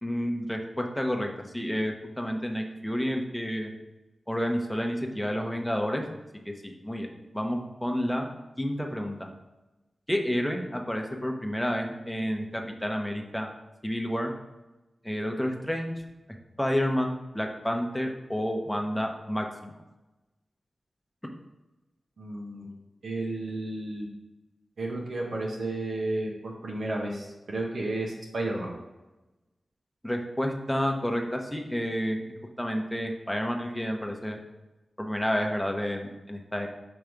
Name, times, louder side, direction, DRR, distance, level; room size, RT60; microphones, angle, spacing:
voice 1, 0.0-3.7 4.3-6.0 6.4-8.3 8.6-9.2 10.1-13.5 13.8-14.3 15.0-15.9 16.6-19.7 30.0-32.2 32.6-34.4 35.0-36.7, equal, 5° left, 2 dB, 0.9 m, -30 dB
voice 2, 22.2-22.7 23.0-24.1 24.8-28.7, right 2 dB, 85° right, -2 dB, 1.2 m, -32 dB
6.0 x 3.1 x 5.2 m, 1.0 s
cardioid pair, 60°, 0 cm